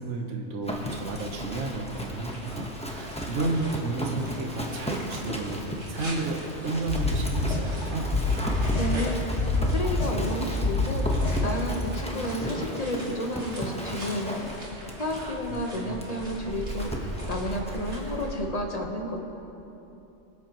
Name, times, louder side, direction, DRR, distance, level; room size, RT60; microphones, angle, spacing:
voice 1, 0.0-8.1 15.2-15.4 15.8-16.0, right 3 dB, 75° right, 1 dB, 1.4 m, -32 dB
Livestock farm animals working animals, 0.6-18.2, equal, 5° left, 0.9 m, -36 dB
sound 1, 0.6-18.4, equal, 55° right, 2.8 m, -42 dB
sound 2, 6.9-7.8 8.1-9.1 9.4-10.3 10.6-11.6, left 3 dB, 70° left, 2.0 m, -26 dB
voice 2, 8.7-9.4 9.6-11.0 11.4-14.7 15.0-19.2, left 1 dB, 35° left, 1 dB, 1.1 m, -31 dB
24.0 x 8.1 x 3.0 m, 3.0 s
omnidirectional pair, 1.3 m